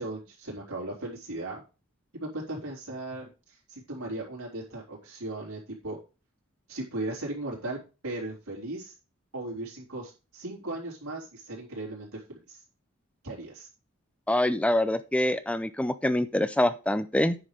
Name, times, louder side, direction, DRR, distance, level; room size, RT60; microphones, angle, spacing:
voice 1, 0.0-1.6 2.1-6.0 6.7-8.9 9.3-12.6 13.2-13.7, right 2 dB, 90° right, -4 dB, 3.8 m, -37 dB
voice 2, 14.3-17.4, left 1 dB, 5° left, 13 dB, 0.5 m, -25 dB
9.4 x 5.6 x 5.0 m, 0.32 s
head